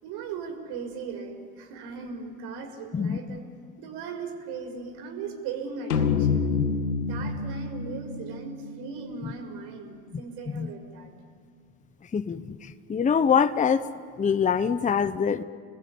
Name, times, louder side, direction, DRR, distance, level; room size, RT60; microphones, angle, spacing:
voice 1, 0.0-3.4 3.8-6.6 7.1-11.1, right 5 dB, 55° right, 6 dB, 5.8 m, -38 dB
voice 2, 2.9-3.4 9.2-9.3 10.5-10.7 12.1-13.8 14.2-15.4, left 7 dB, 15° left, 11 dB, 0.9 m, -24 dB
sound 1, 5.9-9.4, left 5 dB, 85° left, 2.2 m, -28 dB
30.0 x 20.5 x 8.6 m, 2.1 s
hypercardioid pair, 85°, 45 cm